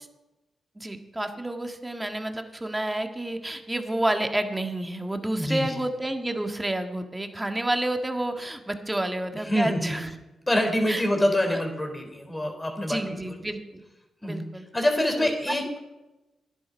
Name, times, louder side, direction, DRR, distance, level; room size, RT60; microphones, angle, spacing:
voice 1, 0.7-10.1 10.9-11.0 11.5-11.6 12.9-13.8 14.2-14.6 15.2-15.3, right 1 dB, 15° right, 6 dB, 1.7 m, -29 dB
voice 2, 5.3-5.8 9.4-10.1 10.5-13.0 14.2-14.4 14.7-15.8, left 1 dB, 20° left, 3 dB, 3.7 m, -25 dB
11.5 x 10.5 x 5.2 m, 1.0 s
supercardioid pair, 45°, 0 cm